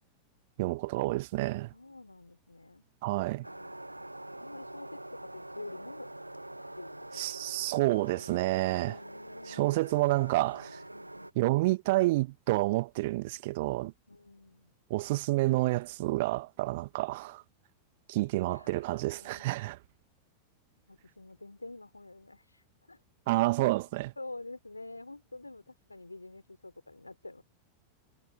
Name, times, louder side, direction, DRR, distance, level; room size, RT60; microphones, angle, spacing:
voice 1, 0.6-1.7 3.0-3.5 7.1-9.0 9.5-10.8 11.4-13.9 14.9-17.4 18.1-19.8 23.3-24.1, right 20 dB, 50° right, 2.0 m, -29 dB
voice 2, 1.7-2.9 3.2-3.8 4.4-6.1 6.8-7.8 8.7-9.9 10.9-11.8 14.1-14.7 18.5-19.4 20.9-23.0 24.2-27.4, left 2 dB, 85° left, 4.9 m, -48 dB
snowmobiles pass by long line convoy ghostly distant far, 3.4-11.3, right 1 dB, 85° right, 1.4 m, -45 dB
figure-of-eight pair, 90°, 0 cm